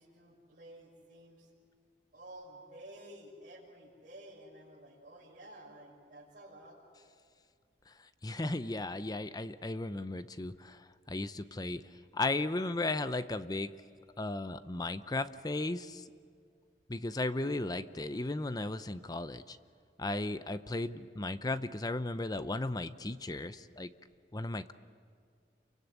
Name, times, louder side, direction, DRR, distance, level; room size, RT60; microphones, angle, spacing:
voice 1, 0.0-1.5 2.1-6.8, right 1 dB, 50° right, -8 dB, 6.4 m, -52 dB
voice 2, 7.9-13.7 14.2-16.1 16.9-19.6 20.0-23.9 24.3-24.7, left 2 dB, 20° left, 12 dB, 0.7 m, -35 dB
28.0 x 24.0 x 8.2 m, 2.1 s
head